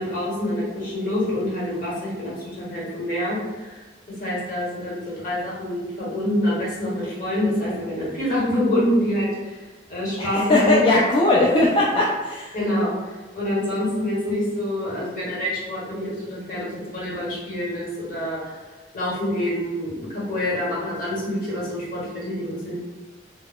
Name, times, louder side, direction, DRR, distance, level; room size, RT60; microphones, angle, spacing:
voice 1, 0.0-3.9 4.2-9.6 9.9-10.9 12.5-12.9 13.3-18.5 18.9-22.7, left 1 dB, 55° left, -8 dB, 1.2 m, -26 dB
voice 2, 10.5-12.5, left 2 dB, 30° left, -5 dB, 0.3 m, -19 dB
2.2 x 2.2 x 3.5 m, 1.2 s
head